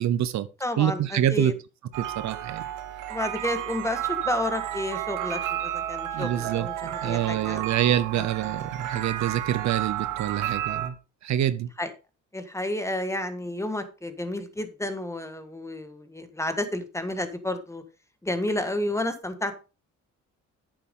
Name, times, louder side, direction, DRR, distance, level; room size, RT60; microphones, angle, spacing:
voice 1, 0.0-0.5 0.8-1.5 2.0-2.6 6.1-11.0 11.2-11.7, right 11 dB, 65° right, 0.7 m, -26 dB
voice 2, 0.6-1.5 3.1-7.6 8.2-8.3 11.8-11.9 12.3-17.8 18.2-19.5, left 1 dB, 10° left, 1.5 m, -31 dB
sound 1, 1.9-10.9, right 11 dB, 85° right, 1.2 m, -32 dB
9.1 x 7.5 x 3.7 m
cardioid pair, 90°, 30 cm